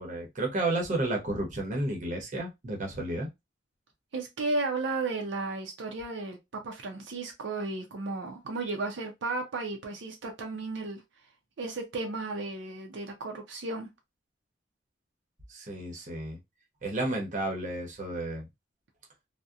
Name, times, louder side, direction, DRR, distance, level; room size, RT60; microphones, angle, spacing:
voice 1, 0.0-3.3 15.5-16.4 16.8-18.5, right 2 dB, 40° right, 0.8 m, -32 dB
voice 2, 4.1-6.4 6.6-11.0 11.6-13.9, right 3 dB, 80° right, 0.5 m, -34 dB
2.7 x 2.1 x 2.4 m
head